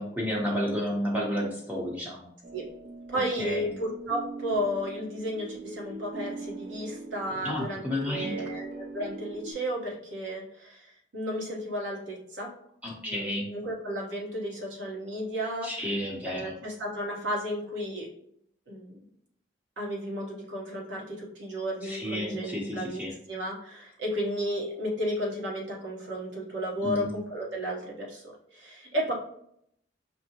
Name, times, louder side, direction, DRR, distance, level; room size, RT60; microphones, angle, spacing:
voice 1, 0.0-2.3 3.1-3.7 7.4-8.4 12.8-13.5 15.6-16.5 21.8-23.2 26.8-27.1, left 1 dB, 10° right, -3 dB, 0.8 m, -31 dB
Steel Tongue Drum played by Cicada near Lake Michigan, 2.4-9.5, right 3 dB, 45° right, 0.3 m, -41 dB
voice 2, 3.1-12.5 13.0-15.9 16.2-18.1 18.7-19.0 19.8-23.0 23.3-28.2 28.5-29.1, equal, 85° right, -3 dB, 1.1 m, -33 dB
5.2 x 2.1 x 2.9 m, 0.70 s
head